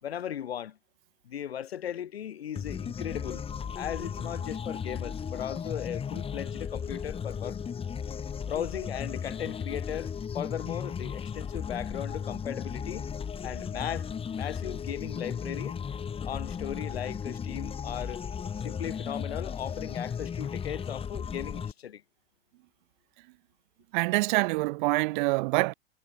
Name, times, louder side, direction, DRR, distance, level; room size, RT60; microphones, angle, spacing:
voice 1, 0.0-0.8 1.2-3.5 3.7-7.6 8.4-13.1 13.4-14.1 14.3-15.8 16.2-18.2 18.6-22.0, left 10 dB, 80° left, 4.2 m, -37 dB
sound 1, 2.5-21.7, left 7 dB, 20° left, 2.8 m, -35 dB
voice 2, 23.9-25.7, right 24 dB, 50° right, 1.2 m, -25 dB
hypercardioid pair, 115°, 31 cm